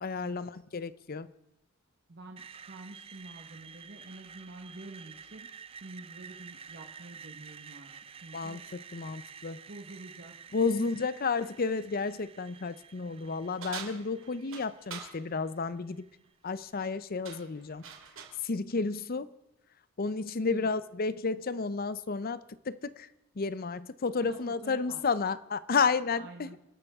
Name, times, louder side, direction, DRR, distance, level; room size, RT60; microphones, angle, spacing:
voice 1, 0.0-1.3 8.3-9.6 10.5-16.1 16.4-17.8 18.4-19.3 20.0-23.1 23.4-26.6, left 4 dB, 45° left, 0.6 m, -32 dB
voice 2, 2.1-7.9 8.2-8.6 9.7-10.3 10.8-11.0 20.5-20.7 24.2-25.0 26.1-26.6, right 2 dB, 55° right, 1.3 m, -48 dB
Screech, 2.4-16.3, right 6 dB, 30° right, 0.5 m, -50 dB
sound 1, 13.6-15.2 16.6-16.9 17.2-18.4, right 6 dB, 80° right, 2.4 m, -44 dB
27.5 x 12.5 x 3.6 m
head